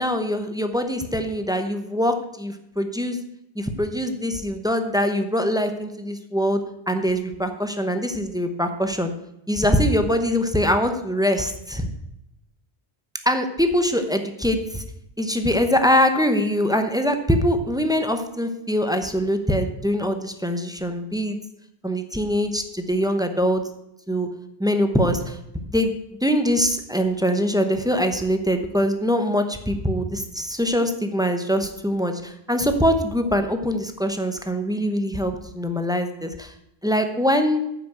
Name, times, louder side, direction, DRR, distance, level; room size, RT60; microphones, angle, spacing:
voice 1, 0.0-3.2 3.6-6.6 6.9-9.1 9.5-11.9 13.3-14.8 15.2-21.4 21.8-23.6 24.1-24.3 24.6-25.4 25.7-25.9 26.2-36.5 36.8-37.6, equal, 5° right, 7 dB, 0.8 m, -23 dB
9.4 x 6.1 x 7.7 m, 0.82 s
omnidirectional pair, 1.1 m